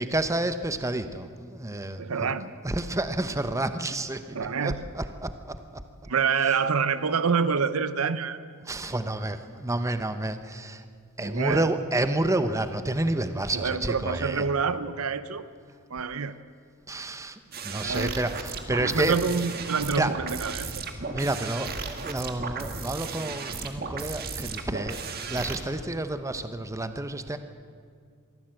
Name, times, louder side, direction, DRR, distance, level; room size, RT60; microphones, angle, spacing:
voice 1, 0.0-2.3 2.6-4.2 4.6-5.8 8.7-10.8 11.2-14.4 16.9-19.1 20.0-20.1 21.1-25.0 25.3-27.4, right 2 dB, 15° right, 10 dB, 0.8 m, -29 dB
voice 2, 2.0-2.5 4.3-4.8 6.0-8.4 11.2-11.7 13.5-15.4 15.9-16.3 17.7-18.2 18.8-20.8, right 5 dB, 75° right, 14 dB, 0.8 m, -27 dB
sound 1, 17.5-25.6, right 4 dB, 45° right, 1.6 m, -35 dB
23.5 x 15.0 x 7.7 m, 2.2 s
head